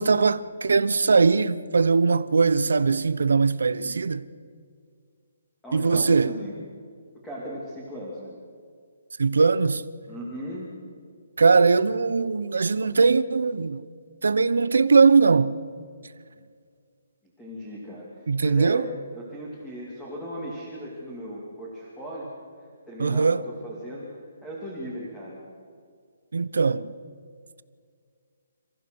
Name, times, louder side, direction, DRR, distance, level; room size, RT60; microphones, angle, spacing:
voice 1, 0.0-4.2 5.7-6.4 9.2-9.8 11.4-13.8 14.2-15.5 18.3-18.9 23.0-23.4 26.3-26.9, right 4 dB, 90° right, 1.0 m, -20 dB
voice 2, 5.6-6.6 7.2-8.4 10.1-10.7 17.4-18.8 19.1-22.3 22.9-25.4, equal, 5° left, 2.6 m, -37 dB
28.5 x 15.0 x 6.3 m
hypercardioid pair, 175°, 0 cm